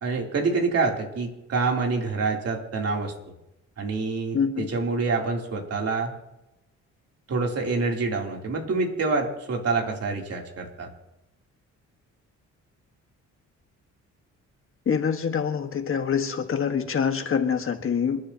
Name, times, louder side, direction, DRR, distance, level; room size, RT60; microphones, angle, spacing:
voice 1, 0.0-3.1 3.8-6.1 7.3-10.9, right 4 dB, 55° right, 1 dB, 3.2 m, -26 dB
voice 2, 4.3-4.7 14.8-18.2, left 7 dB, 45° left, 6 dB, 1.5 m, -25 dB
27.5 x 10.5 x 2.9 m, 0.91 s
cardioid pair, 90°, 30 cm